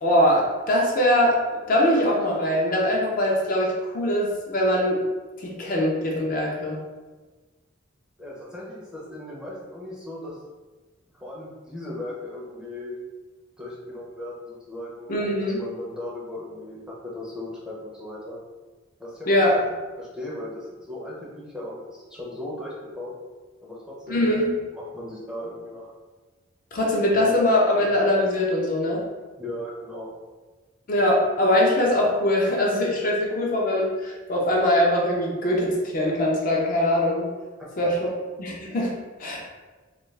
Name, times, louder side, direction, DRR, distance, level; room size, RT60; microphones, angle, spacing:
voice 1, 0.0-5.0 5.4-6.8 15.1-15.6 19.3-19.5 24.1-24.5 26.7-29.0 30.9-37.3 37.8-38.0 38.4-39.4, left 1 dB, 45° left, -2 dB, 0.5 m, -22 dB
voice 2, 8.2-10.4 11.1-13.0 13.6-18.4 19.0-19.6 20.0-23.1 23.6-24.3 24.7-25.9 29.4-30.1 37.8-37.9, left 1 dB, 5° right, -6 dB, 0.5 m, -37 dB
2.3 x 2.3 x 3.1 m, 1.3 s
head